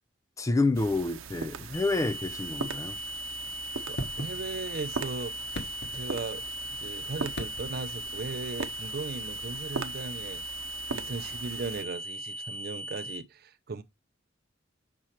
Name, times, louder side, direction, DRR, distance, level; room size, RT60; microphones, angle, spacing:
voice 1, 0.4-3.0, left 3 dB, 15° left, 0.4 m, -28 dB
sound 1, 0.7-11.8, right 4 dB, 80° right, 0.7 m, -40 dB
sound 2, 1.7-13.2, equal, 85° left, 3.1 m, -38 dB
voice 2, 3.9-6.4 6.7-10.4 10.9-13.8, right 3 dB, 50° right, 0.5 m, -37 dB
sound 3, 4.0-4.9 5.4-6.6 7.3-8.0 9.6-9.7, left 1 dB, 55° left, 1.3 m, -40 dB
6.1 x 4.4 x 4.3 m
head